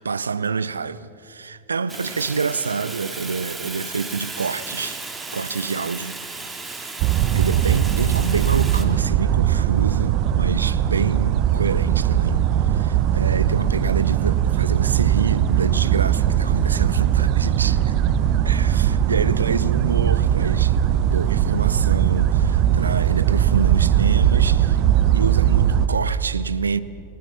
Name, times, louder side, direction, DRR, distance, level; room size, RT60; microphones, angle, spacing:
voice 1, 0.0-5.0 5.3-6.9 7.3-12.4 12.7-17.9 18.4-24.8 25.1-26.8, right 5 dB, 75° right, 0.6 m, -27 dB
Fire, 1.9-8.8, right 3 dB, 10° right, 2.3 m, -35 dB
sound 1, 7.0-25.9, right 10 dB, 40° right, 1.0 m, -19 dB
28.0 x 19.5 x 6.0 m
figure-of-eight pair, 90°, 0 cm